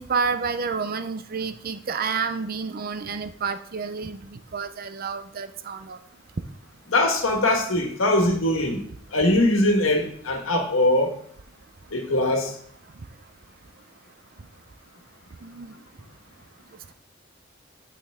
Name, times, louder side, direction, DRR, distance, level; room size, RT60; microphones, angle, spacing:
voice 1, 0.0-6.0 15.4-15.7, right 5 dB, 50° right, 9 dB, 0.6 m, -29 dB
voice 2, 6.9-8.8 9.1-11.1 11.9-12.5, left 1 dB, 80° left, 3 dB, 1.5 m, -21 dB
8.8 x 5.7 x 3.6 m, 0.63 s
head